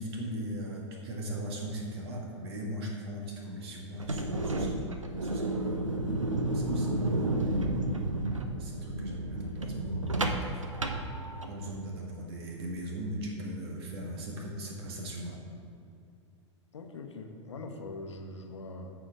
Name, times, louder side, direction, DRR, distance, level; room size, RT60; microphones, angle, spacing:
voice 1, 0.0-5.5 6.5-7.5 8.6-10.6 11.5-15.4, right 1 dB, 55° right, -1 dB, 1.9 m, -39 dB
sound 1, 3.9-11.7, right 1 dB, 85° right, 0.7 m, -31 dB
voice 2, 16.7-18.9, left 2 dB, 65° left, 4 dB, 0.9 m, -42 dB
14.0 x 4.9 x 3.8 m, 2.5 s
figure-of-eight pair, 95°, 16 cm